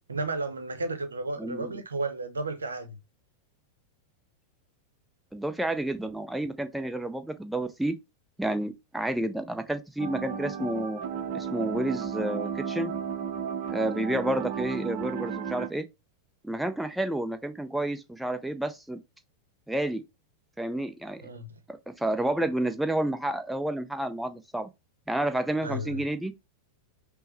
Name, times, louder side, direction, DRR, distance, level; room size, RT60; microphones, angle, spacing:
voice 1, 0.1-3.0 12.9-13.0 21.2-21.6 25.6-26.0, right 2 dB, 75° right, 0.7 m, -33 dB
voice 2, 1.4-1.7 5.3-8.0 8.4-11.0 11.3-12.9 13.7-15.9 16.4-19.0 19.7-20.0 20.6-21.2 21.7-24.7 25.1-26.3, right 1 dB, 5° right, 0.5 m, -30 dB
sound 1, 10.0-15.7, right 7 dB, 40° right, 0.7 m, -33 dB
5.5 x 2.1 x 4.1 m
figure-of-eight pair, 90°, 0 cm